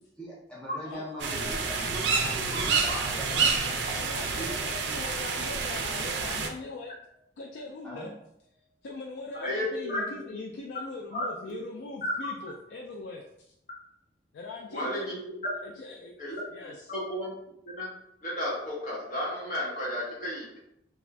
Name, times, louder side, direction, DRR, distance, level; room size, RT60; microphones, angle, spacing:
voice 1, 0.2-3.6 4.1-4.6 7.8-8.1, equal, 5° left, -6 dB, 0.6 m, -41 dB
sound 1, 0.9-7.6 7.9-8.5, left 2 dB, 20° right, 1.0 m, -51 dB
sound 2, 1.2-6.5, right 5 dB, 75° right, 0.4 m, -29 dB
voice 2, 2.8-6.9 7.4-8.1 8.8-13.2 14.3-15.2 15.6-16.1 16.5-16.9, left 3 dB, 85° left, 0 dB, 0.3 m, -41 dB
voice 3, 9.3-10.4 11.1-11.6 14.7-15.4 16.2-16.4 16.9-17.3 17.6-17.9 18.2-20.6, left 1 dB, 45° left, -6 dB, 1.2 m, -33 dB
2.5 x 2.3 x 3.2 m, 0.77 s
head